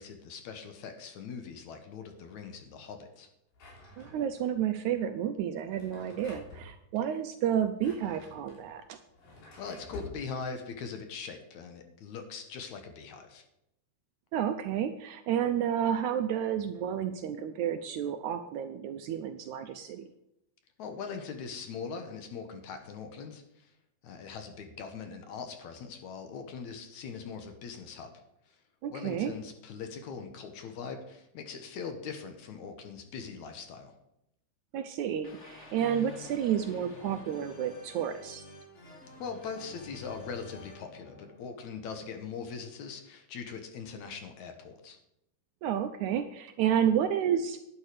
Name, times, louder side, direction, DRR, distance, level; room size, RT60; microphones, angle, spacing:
voice 1, 0.0-3.3 9.6-13.4 20.8-23.8 24.0-28.1 28.5-28.6 28.9-34.0 39.2-45.0, left 5 dB, 65° left, 6 dB, 2.2 m, -41 dB
Drawer open or close, 3.5-4.5 5.6-6.7 7.6-10.2, left 2 dB, 90° left, 5.0 m, -49 dB
voice 2, 4.0-9.0 14.3-20.1 28.8-29.3 34.7-38.4 45.6-47.6, right 9 dB, 75° right, 8 dB, 1.8 m, -31 dB
sound 1, 35.2-42.2, left 3 dB, 35° left, 1.1 m, -49 dB
11.0 x 9.8 x 4.9 m, 0.83 s
omnidirectional pair, 3.9 m